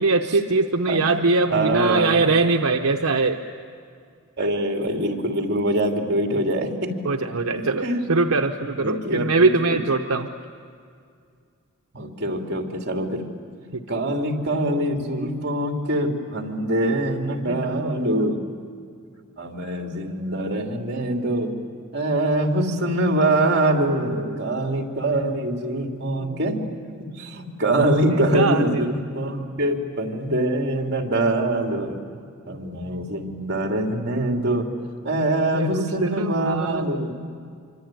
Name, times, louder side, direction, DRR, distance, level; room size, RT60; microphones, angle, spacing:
voice 1, 0.0-3.4 7.0-10.3 13.7-13.8 17.5-18.3 23.7-24.4 26.3-26.4 27.8-27.9 28.3-28.8 35.5-37.1, right 3 dB, 80° right, 4 dB, 0.9 m, -23 dB
voice 2, 1.5-2.2 4.4-7.0 7.6-8.1 8.8-9.8 11.9-13.2 13.9-18.4 19.4-21.5 21.9-26.7 27.0-28.9 29.1-32.0 32.5-34.7 35.0-37.1, right 1 dB, 50° right, 2 dB, 2.9 m, -24 dB
25.5 x 25.0 x 9.1 m, 2.2 s
head